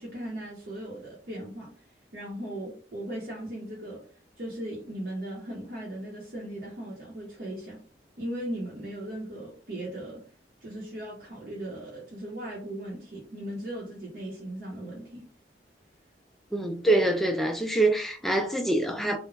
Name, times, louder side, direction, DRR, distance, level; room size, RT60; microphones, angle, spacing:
voice 1, 0.0-1.7 2.1-4.0 4.4-7.8 8.2-10.2 10.6-15.2, right 1 dB, 60° right, 0.8 m, -38 dB
voice 2, 16.5-19.2, right 2 dB, ahead, 0.3 m, -25 dB
2.3 x 2.1 x 3.2 m
head